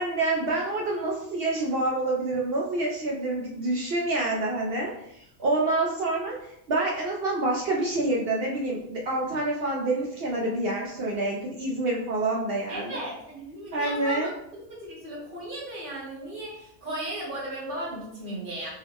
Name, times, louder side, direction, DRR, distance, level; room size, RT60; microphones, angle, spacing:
voice 1, 0.0-6.3 6.7-13.0 13.7-14.3, right 2 dB, 65° right, -3 dB, 0.6 m, -27 dB
voice 2, 12.7-18.7, right 1 dB, 40° right, -5 dB, 1.2 m, -36 dB
3.7 x 2.1 x 3.4 m, 0.78 s
omnidirectional pair, 1.4 m